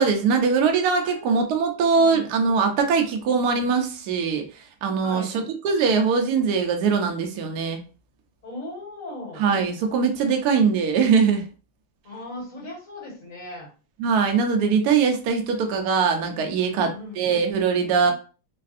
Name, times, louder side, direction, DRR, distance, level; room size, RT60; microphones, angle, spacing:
voice 1, 0.0-4.4 4.8-5.2 5.6-7.8 9.4-11.4 14.0-18.1, right 5 dB, 80° right, 4 dB, 0.8 m, -21 dB
voice 2, 1.9-2.3 5.0-5.3 8.4-9.4 12.0-13.7 16.7-17.2, left 2 dB, 45° left, -3 dB, 1.5 m, -37 dB
3.3 x 2.4 x 2.4 m, 0.35 s
omnidirectional pair, 2.2 m